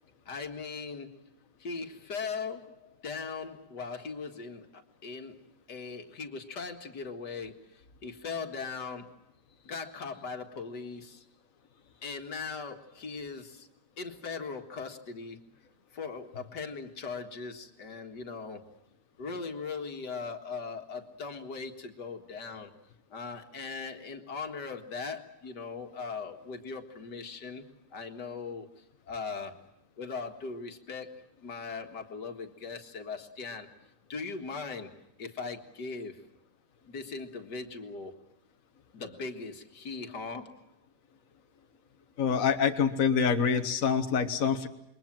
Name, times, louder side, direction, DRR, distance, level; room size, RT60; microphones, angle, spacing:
voice 1, 0.3-1.2 1.6-5.4 5.7-9.1 9.6-11.2 12.0-13.7 14.0-15.4 15.9-18.7 19.2-22.7 23.1-28.7 29.1-29.6 30.0-31.1 31.4-33.7 34.1-36.2 36.9-38.1 38.9-40.6, left 4 dB, 80° left, 5 dB, 2.4 m, -39 dB
voice 2, 42.2-44.7, left 6 dB, 55° left, 6 dB, 1.7 m, -26 dB
28.0 x 22.5 x 7.5 m, 0.82 s
omnidirectional pair, 1.8 m